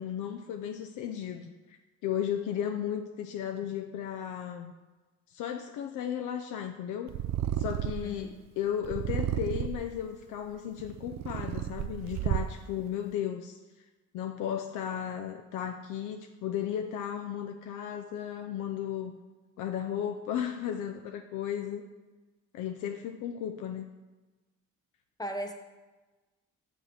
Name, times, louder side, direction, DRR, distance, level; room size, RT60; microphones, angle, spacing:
voice 1, 0.0-1.8 2.0-4.7 5.3-7.1 7.6-13.6 14.1-19.1 19.6-21.8 22.5-23.9, left 9 dB, 85° left, 4 dB, 0.5 m, -35 dB
Purr, 7.1-8.2 8.8-9.9 10.6-12.7, right 12 dB, 65° right, 0.5 m, -32 dB
voice 2, 8.0-8.4 25.2-25.5, equal, 15° left, 4 dB, 0.7 m, -37 dB
6.5 x 5.3 x 5.7 m, 1.2 s
cardioid pair, 90°, 30 cm